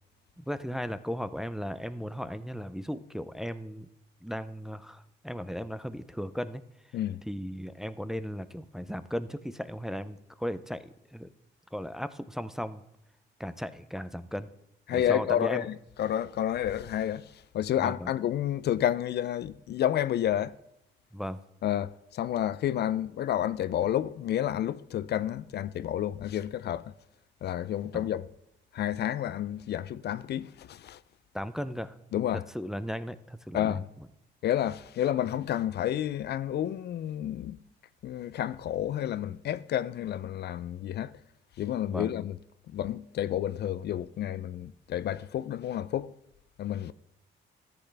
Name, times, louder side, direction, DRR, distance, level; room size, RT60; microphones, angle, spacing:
voice 1, 0.4-3.9 4.2-6.6 7.3-11.3 11.7-12.8 13.4-14.5 14.9-15.7 17.8-18.1 21.1-21.4 27.9-28.0 31.3-32.0 32.5-33.8 41.9-42.1, equal, ahead, 0.4 m, -36 dB
voice 2, 14.9-20.6 21.6-26.8 27.4-28.3 28.7-31.0 32.1-32.4 33.5-33.9 34.4-37.6 38.0-41.2 41.6-42.4 42.7-46.1 46.6-46.9, left 11 dB, 55° left, 0.4 m, -30 dB
13.5 x 7.9 x 3.4 m
cardioid pair, 90°, 20 cm